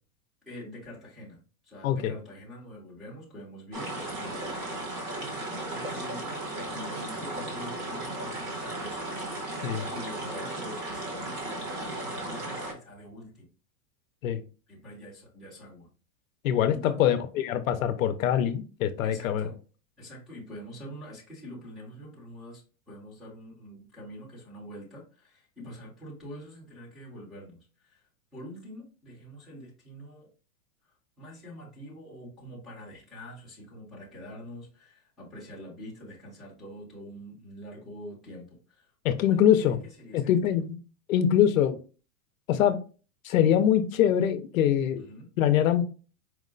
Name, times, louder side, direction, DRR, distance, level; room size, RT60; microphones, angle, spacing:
voice 1, 0.4-1.4 1.6-9.2 9.5-13.5 14.7-15.9 16.7-17.1 19.0-19.6 20.0-30.3 31.2-38.9 39.3-40.6 45.0-45.3, equal, ahead, -8 dB, 0.7 m, -45 dB
sound 1, 3.7-12.7, right 2 dB, 25° right, 1.0 m, -35 dB
voice 2, 16.4-19.5 39.0-39.8 40.1-40.6 41.1-41.8 42.5-42.8 43.2-45.1 45.4-45.8, left 10 dB, 70° left, 9 dB, 0.6 m, -23 dB
4.6 x 2.1 x 3.7 m, 0.35 s
supercardioid pair, 175°, 43 cm